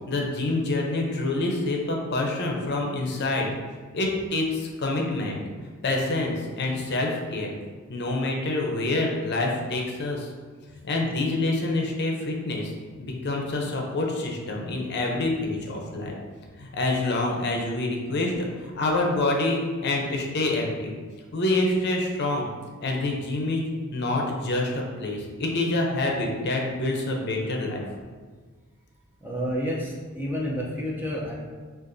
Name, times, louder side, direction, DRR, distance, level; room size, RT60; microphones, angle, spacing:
voice 1, 0.1-3.5 3.9-5.4 5.8-7.6 7.9-10.3 10.8-12.7 13.0-16.1 16.6-18.3 18.6-20.9 21.3-22.5 22.8-23.6 23.9-27.8, left 2 dB, 50° left, 0 dB, 0.6 m, -26 dB
voice 2, 29.2-31.3, equal, 10° right, -3 dB, 0.6 m, -29 dB
6.4 x 2.5 x 2.6 m, 1.5 s
head